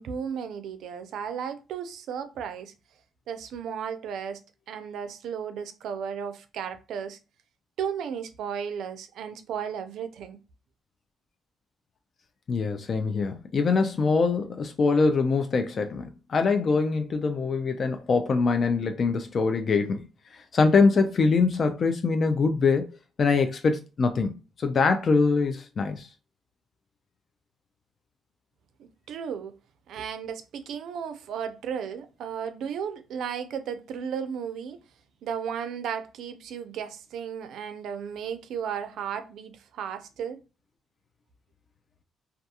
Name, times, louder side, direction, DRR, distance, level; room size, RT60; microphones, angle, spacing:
voice 1, 0.0-2.7 3.3-4.4 4.7-7.2 7.8-10.4 28.8-29.6 29.9-34.8 35.2-40.4, right 7 dB, 75° right, 0.4 m, -34 dB
voice 2, 12.5-20.1 20.3-22.9 23.2-24.3 24.6-26.1, left 4 dB, 50° left, 0.3 m, -23 dB
2.3 x 2.3 x 2.7 m
cardioid pair, 90°, 0 cm